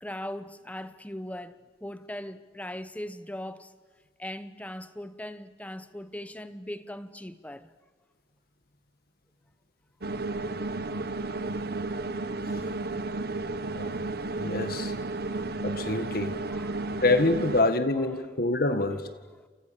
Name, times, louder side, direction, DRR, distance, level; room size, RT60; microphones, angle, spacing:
voice 1, 0.0-3.7 4.2-7.7 11.8-11.9 15.3-15.5 16.5-17.0 19.3-19.5, left 1 dB, 10° left, 1.1 m, -40 dB
sound 1, 10.0-17.6, right 2 dB, 60° right, 1.2 m, -32 dB
voice 2, 14.4-14.9 15.6-16.3 17.0-19.0, left 2 dB, 55° left, 2.0 m, -26 dB
29.0 x 28.5 x 7.1 m
head